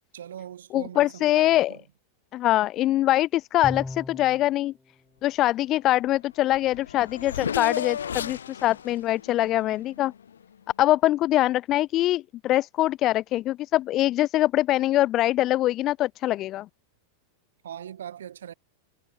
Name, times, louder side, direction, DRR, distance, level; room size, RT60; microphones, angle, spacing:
voice 1, 0.1-1.8 17.6-18.5, right 10 dB, 65° right, 6.7 m, -40 dB
voice 2, 0.7-1.7 2.3-4.7 5.2-10.1 10.8-16.7, left 15 dB, 35° left, 0.3 m, -23 dB
Bowed string instrument, 3.6-4.5, left 2 dB, 10° left, 1.9 m, -35 dB
Race car auto racing / Accelerating revving vroom, 6.1-6.2 6.4-10.4, left 8 dB, 65° left, 1.3 m, -34 dB
figure-of-eight pair, 90°, 0 cm